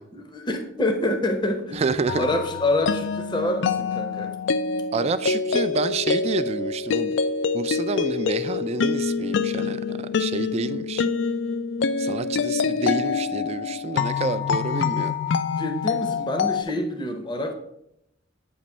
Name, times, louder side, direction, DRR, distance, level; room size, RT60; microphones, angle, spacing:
voice 1, 0.1-1.8 2.2-4.4 15.5-17.5, left 1 dB, 25° left, 5 dB, 0.6 m, -26 dB
voice 2, 1.7-2.3 4.9-7.2 7.5-11.1 12.0-15.1, right 4 dB, 35° right, 13 dB, 0.3 m, -28 dB
sound 1, 2.1-16.6, left 5 dB, 65° left, 0.3 m, -26 dB
8.5 x 3.0 x 5.3 m, 0.81 s
head